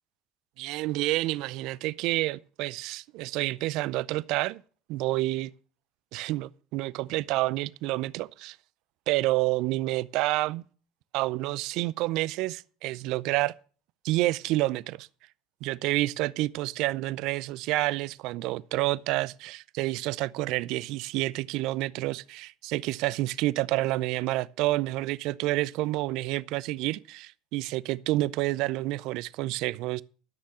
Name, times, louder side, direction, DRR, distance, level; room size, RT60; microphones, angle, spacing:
voice 1, 0.6-4.6 4.9-5.5 6.1-8.6 9.1-10.6 11.1-13.5 14.0-15.1 15.6-30.0, right 18 dB, 65° right, 0.5 m, -29 dB
13.0 x 6.5 x 7.2 m
hypercardioid pair, 75°, 0 cm